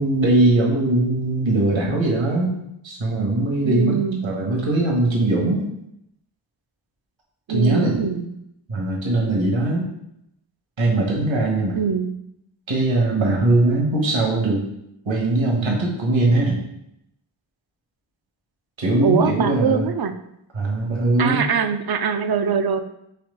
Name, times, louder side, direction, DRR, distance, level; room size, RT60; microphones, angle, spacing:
voice 1, 0.0-4.0 4.2-5.6 7.5-8.0 8.7-9.9 10.8-11.8 12.7-14.6 15.1-16.6 18.8-19.8 20.5-21.4, right 2 dB, 70° right, -2 dB, 1.4 m, -20 dB
voice 2, 3.6-4.3 7.5-8.3 11.7-12.1 19.0-20.1 21.2-22.8, right 6 dB, 50° right, 9 dB, 0.5 m, -22 dB
4.3 x 3.0 x 3.9 m, 0.79 s
wide cardioid pair, 55°, 49 cm